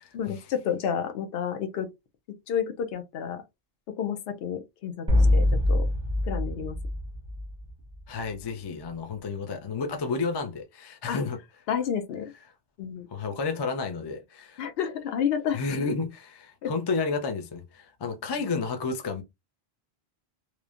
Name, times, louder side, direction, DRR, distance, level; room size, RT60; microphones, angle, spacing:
voice 1, 0.1-1.9 2.5-3.4 3.9-5.9 6.2-6.8 11.1-11.2 11.7-12.3 12.8-13.1 14.6-15.6 16.6-16.7, left 8 dB, 70° left, 0.8 m, -30 dB
sound 1, 5.1-7.9, left 1 dB, 5° right, 0.6 m, -24 dB
voice 2, 8.1-11.4 13.1-14.6 15.5-19.2, left 4 dB, 40° left, 0.3 m, -31 dB
3.0 x 2.1 x 2.4 m
omnidirectional pair, 1.1 m